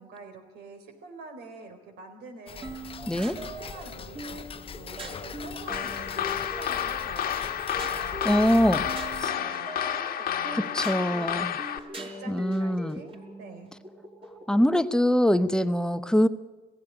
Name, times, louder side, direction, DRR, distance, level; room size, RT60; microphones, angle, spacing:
voice 1, 0.0-2.9 3.1-13.7, right 3 dB, 75° right, 5 dB, 4.2 m, -46 dB
Tick-tock, 2.5-9.3, left 6 dB, 35° left, 0.7 m, -41 dB
sound 1, 2.6-14.8, equal, 35° right, 4.8 m, -42 dB
sound 2, 5.7-11.8, left 10 dB, 60° left, 1.4 m, -30 dB
voice 2, 8.2-8.8 9.2-9.3 10.5-11.5 12.3-13.0 14.5-16.3, equal, 5° left, 11 dB, 0.8 m, -23 dB
16.5 x 16.0 x 9.9 m, 1.2 s
cardioid pair, 110°, 17 cm